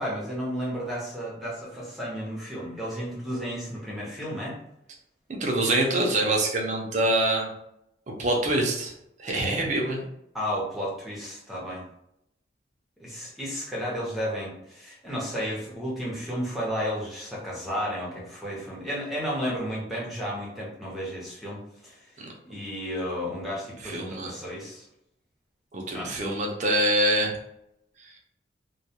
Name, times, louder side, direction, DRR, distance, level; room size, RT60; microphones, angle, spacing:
voice 1, 0.0-4.6 10.3-11.9 13.0-22.1 22.4-24.9 25.9-26.1, equal, ahead, -6 dB, 0.7 m, -33 dB
voice 2, 5.4-7.5 8.1-8.9 9.2-10.0 22.2-22.3 23.8-24.3 25.7-27.4, right 1 dB, 40° right, 0 dB, 0.5 m, -25 dB
2.2 x 2.2 x 2.7 m, 0.79 s
head